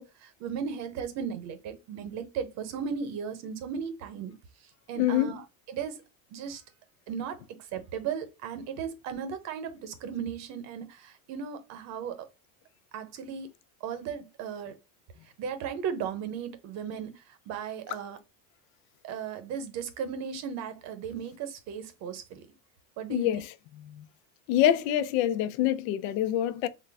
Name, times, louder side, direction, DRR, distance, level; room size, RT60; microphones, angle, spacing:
voice 1, 0.0-4.3 4.9-5.4 5.7-6.0 6.3-6.6 7.1-7.4 7.7-12.2 12.9-13.5 13.8-14.8 15.4-17.1 17.5-18.2 19.0-22.5 23.0-23.3, right 7 dB, 45° right, 0.7 m, -36 dB
voice 2, 5.0-5.3 17.9-18.0 23.1-24.0 24.5-26.7, left 11 dB, 85° left, 0.6 m, -26 dB
3.9 x 2.1 x 3.4 m
cardioid pair, 160°, 39 cm